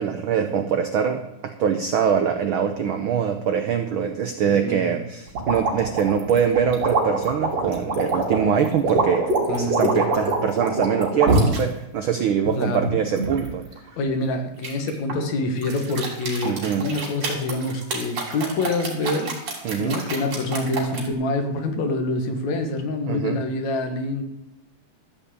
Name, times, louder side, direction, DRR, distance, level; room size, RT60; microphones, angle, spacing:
voice 1, 0.0-13.6 16.4-16.9 19.6-20.0 23.1-23.4, right 7 dB, 90° right, 7 dB, 1.1 m, -23 dB
voice 2, 4.4-5.0 9.5-9.9 12.6-12.9 14.0-19.3 19.8-24.2, left 2 dB, 70° left, 5 dB, 2.8 m, -26 dB
sound 1, 5.3-11.6 12.2-13.5 14.6-15.2 15.6-21.1, right 3 dB, 60° right, 3.9 m, -25 dB
13.5 x 5.5 x 8.4 m, 0.91 s
omnidirectional pair, 3.3 m